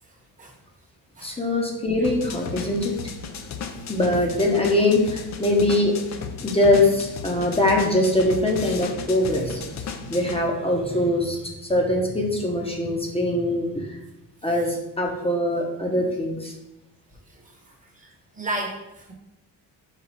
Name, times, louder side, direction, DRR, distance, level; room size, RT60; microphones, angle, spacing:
voice 1, 1.2-3.0 3.9-5.9 6.4-14.0 14.4-16.5, left 1 dB, 15° left, 0 dB, 0.8 m, -22 dB
sound 1, 2.0-10.4, left 6 dB, 40° left, 0.5 m, -35 dB
voice 2, 17.3-19.1, right 1 dB, 20° right, 0 dB, 1.1 m, -35 dB
4.2 x 2.3 x 4.5 m, 0.95 s
cardioid pair, 80°, 42 cm